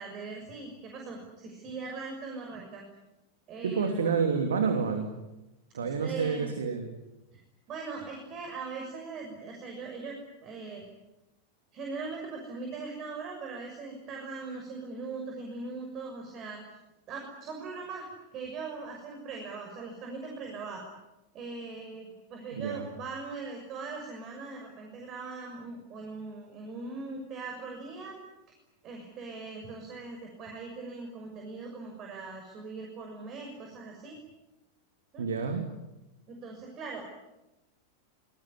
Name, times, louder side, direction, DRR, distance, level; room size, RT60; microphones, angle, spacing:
voice 1, 0.0-2.8 3.5-4.1 5.8-6.6 7.3-7.4 7.7-10.8 11.7-16.6 17.1-18.1 18.3-20.8 21.3-28.2 28.8-34.2 35.1-35.2 36.3-37.0, right 4 dB, 35° right, 2 dB, 6.2 m, -40 dB
voice 2, 3.6-5.2 5.7-6.9 22.5-22.9 35.2-35.7, right 5 dB, 65° right, 6 dB, 2.9 m, -29 dB
26.5 x 21.0 x 9.7 m, 0.98 s
figure-of-eight pair, 90°, 0 cm